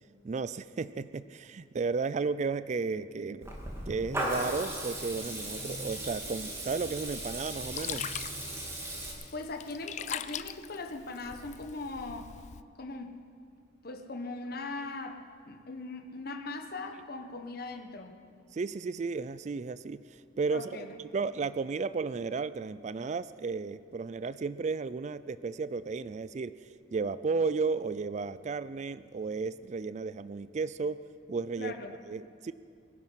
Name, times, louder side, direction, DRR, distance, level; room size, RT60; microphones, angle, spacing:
voice 1, 0.2-3.5 3.9-8.0 18.5-31.0 31.3-31.7 32.1-32.5, right 4 dB, 40° right, 15 dB, 0.3 m, -34 dB
Water tap faucet / Liquid, 3.4-9.1, right 1 dB, 15° right, 2.4 m, -37 dB
Sink (filling or washing), 6.9-12.6, left 10 dB, 40° left, 0.3 m, -42 dB
voice 2, 9.3-12.3 12.8-13.2 13.8-18.2 20.5-20.9 31.6-32.0, left 3 dB, 55° left, 5 dB, 1.3 m, -40 dB
23.0 x 10.5 x 5.7 m, 2.4 s
head